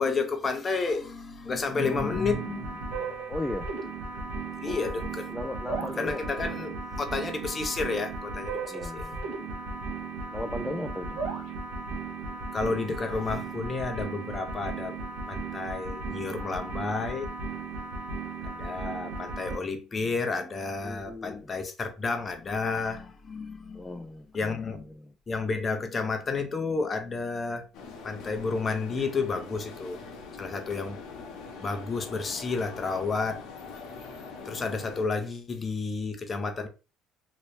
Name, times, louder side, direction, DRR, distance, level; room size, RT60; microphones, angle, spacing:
voice 1, 0.0-3.1 4.6-5.3 6.0-9.1 12.5-15.0 15.3-17.3 18.4-24.0 24.3-24.9 25.3-27.6 28.0-30.0 30.4-31.0 31.6-33.4 34.4-36.7, left 4 dB, 30° left, 0.7 m, -31 dB
sound 1, 1.8-19.6, right 3 dB, 85° right, 0.8 m, -36 dB
voice 2, 3.3-3.7 4.6-6.4 8.7-9.3 10.3-11.2 20.8-21.5 23.7-25.1, left 1 dB, 10° left, 0.3 m, -37 dB
sound 2, 27.7-35.0, left 4 dB, 70° left, 0.9 m, -43 dB
3.0 x 2.7 x 3.1 m
cardioid pair, 115°, 0 cm